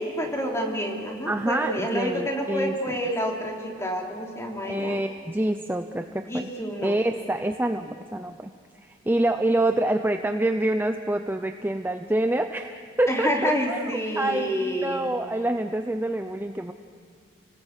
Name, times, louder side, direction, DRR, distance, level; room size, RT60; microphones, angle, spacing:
voice 1, 0.0-5.0 6.3-6.9 13.1-15.1, equal, 15° left, 0 dB, 3.2 m, -28 dB
voice 2, 1.3-3.0 4.6-6.5 6.8-8.5 8.8-13.8 14.2-16.7, right 1 dB, 10° right, 7 dB, 0.6 m, -26 dB
29.5 x 19.5 x 8.2 m, 2.1 s
head